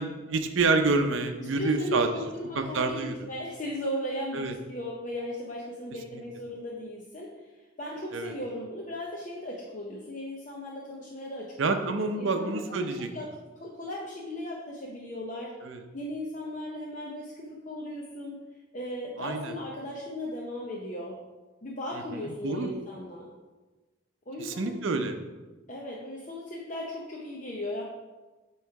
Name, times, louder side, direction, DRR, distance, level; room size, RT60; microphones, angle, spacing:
voice 1, 0.0-2.1 2.5-3.2 4.3-4.5 8.1-8.3 11.6-13.1 15.6-15.8 19.2-19.5 22.2-22.7 24.4-25.1, right 3 dB, 75° right, 7 dB, 0.6 m, -28 dB
voice 2, 1.4-7.4 7.8-15.6 15.9-18.4 18.7-21.2 21.6-23.3 24.3-24.8 25.7-27.9, left 1 dB, 40° left, -3 dB, 0.7 m, -37 dB
8.1 x 3.1 x 4.6 m, 1.2 s
head